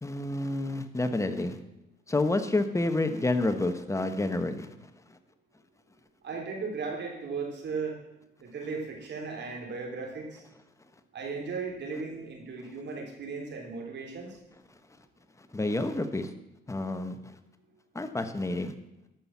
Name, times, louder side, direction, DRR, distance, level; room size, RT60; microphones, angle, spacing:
voice 1, 0.0-1.6 2.1-4.7 15.5-16.3 16.7-17.3 17.9-18.7, left 2 dB, 15° left, 8 dB, 1.2 m, -29 dB
voice 2, 6.2-8.0 8.4-10.4 11.1-14.4, right 4 dB, 60° right, 1 dB, 3.4 m, -36 dB
13.5 x 6.3 x 7.2 m, 0.91 s
cardioid pair, 90°, 20 cm